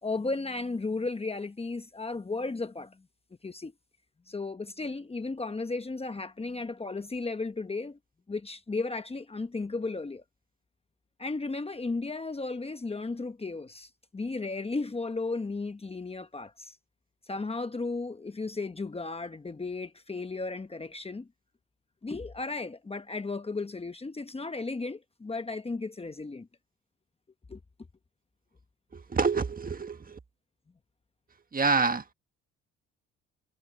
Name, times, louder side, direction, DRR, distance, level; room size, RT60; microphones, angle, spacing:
voice 1, 0.0-3.0 3.4-3.7 4.3-8.0 8.3-10.2 11.2-16.8 17.3-21.3 22.0-26.5 27.5-27.6, left 3 dB, 20° left, 1.1 m, -34 dB
voice 2, 28.9-30.2 31.5-32.0, right 4 dB, 30° right, 1.6 m, -27 dB
cardioid pair, 90°, 30 cm